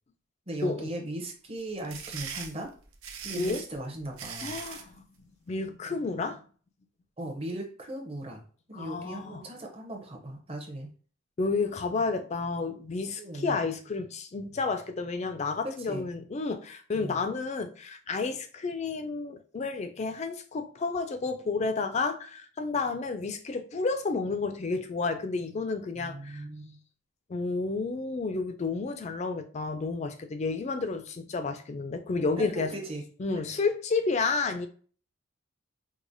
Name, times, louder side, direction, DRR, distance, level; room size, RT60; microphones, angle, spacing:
voice 1, 0.5-2.7 3.2-4.6 7.2-8.4 8.7-10.9 13.2-13.6 15.6-16.1 16.9-17.3 26.0-26.8 32.4-33.0, right 1 dB, 25° right, 2 dB, 0.6 m, -38 dB
sound 1, 1.6-4.9, right 7 dB, 85° right, 0.6 m, -40 dB
voice 2, 4.4-5.0 5.5-6.4 8.7-9.4 11.4-26.4 27.3-32.7 33.2-34.7, left 4 dB, 30° left, 8 dB, 0.3 m, -31 dB
4.7 x 2.1 x 2.6 m, 0.42 s
head